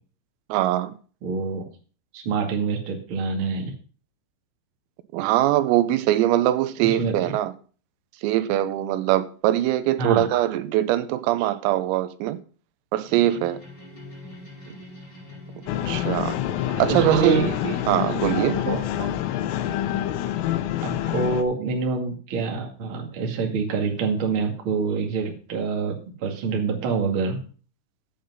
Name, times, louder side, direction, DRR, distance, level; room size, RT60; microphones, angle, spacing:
voice 1, 0.5-0.9 5.1-7.5 8.2-12.4 12.9-13.6 14.7-14.8 15.9-16.4 16.8-18.6 19.0-19.1, right 13 dB, 90° right, 3.5 m, -22 dB
voice 2, 1.2-1.6 2.1-3.7 6.8-7.1 10.0-10.2 16.7-17.5 18.3-18.8 20.8-27.4, right 4 dB, 45° right, 1.6 m, -26 dB
sound 1, 13.0-19.0, left 1 dB, 25° left, 5.5 m, -43 dB
sound 2, 15.7-21.4, left 12 dB, 85° left, 3.4 m, -27 dB
9.0 x 8.7 x 5.5 m
omnidirectional pair, 5.9 m